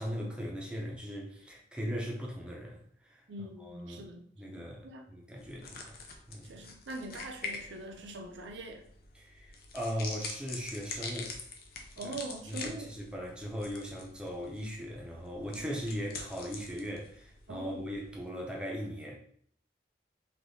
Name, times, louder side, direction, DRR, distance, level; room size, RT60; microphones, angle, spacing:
voice 1, 0.0-3.2 3.6-4.1 4.4-5.9 6.3-6.6 9.1-11.4 12.0-12.1 12.5-19.2, equal, 5° right, -2 dB, 0.5 m, -39 dB
voice 2, 3.3-5.0 6.4-8.8 12.0-12.9 15.5-15.8 17.5-17.8, right 2 dB, 75° right, 3 dB, 0.6 m, -43 dB
sound 1, 5.4-18.2, left 4 dB, 50° left, 0.5 m, -45 dB
3.4 x 2.7 x 2.7 m, 0.65 s
head